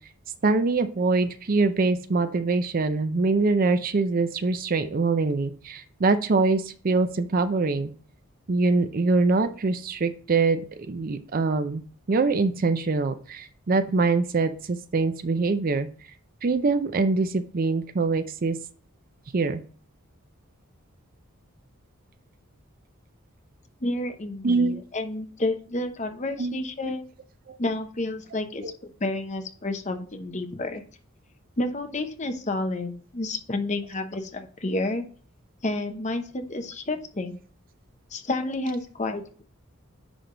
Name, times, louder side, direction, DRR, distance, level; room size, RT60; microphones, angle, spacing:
voice 1, 0.4-7.9 8.5-11.8 12.1-15.9 16.4-18.6 19.3-19.6 24.4-24.8 26.4-26.5 27.5-27.6, right 3 dB, 40° right, 11 dB, 0.5 m, -24 dB
voice 2, 23.8-27.0 27.6-30.8 31.6-35.0 35.6-37.4 38.1-39.4, left 2 dB, 35° left, 6 dB, 0.9 m, -30 dB
10.0 x 3.5 x 3.8 m, 0.43 s
head